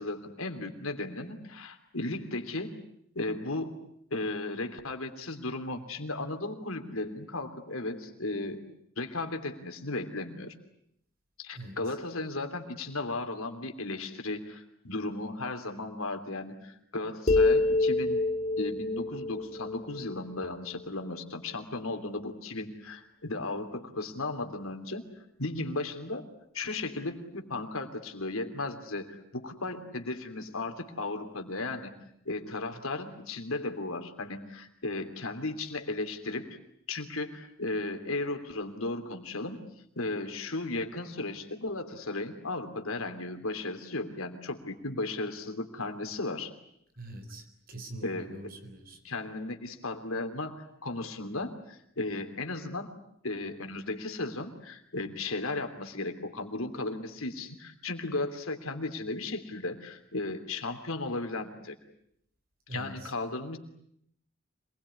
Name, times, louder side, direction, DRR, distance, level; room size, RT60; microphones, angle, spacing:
voice 1, 0.0-2.8 3.1-3.7 4.1-8.6 9.0-10.5 11.4-18.2 18.6-25.0 25.4-26.2 26.5-31.9 32.2-36.5 36.9-39.6 40.0-46.5 48.0-48.3 49.0-52.9 53.2-61.7 62.7-63.6, left 2 dB, 85° left, 6 dB, 3.1 m, -35 dB
sound 1, 17.3-20.8, left 3 dB, 30° left, 1.2 m, -27 dB
voice 2, 47.0-49.0 62.7-63.1, right 1 dB, 45° right, 7 dB, 4.0 m, -43 dB
26.0 x 20.5 x 9.8 m, 0.72 s
head